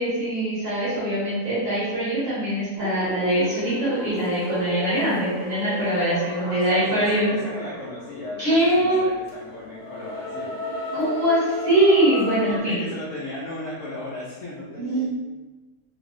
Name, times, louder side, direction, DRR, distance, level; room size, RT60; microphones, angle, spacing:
voice 1, 0.0-7.6 8.4-9.0 10.9-12.8 14.8-15.1, right 1 dB, 60° right, -9 dB, 1.5 m, -22 dB
sound 1, 2.8-12.6, left 1 dB, 35° left, 0.8 m, -33 dB
voice 2, 6.3-10.6 12.4-15.1, left 1 dB, 65° left, -6 dB, 0.9 m, -36 dB
3.3 x 3.2 x 2.5 m, 1.2 s
omnidirectional pair, 1.6 m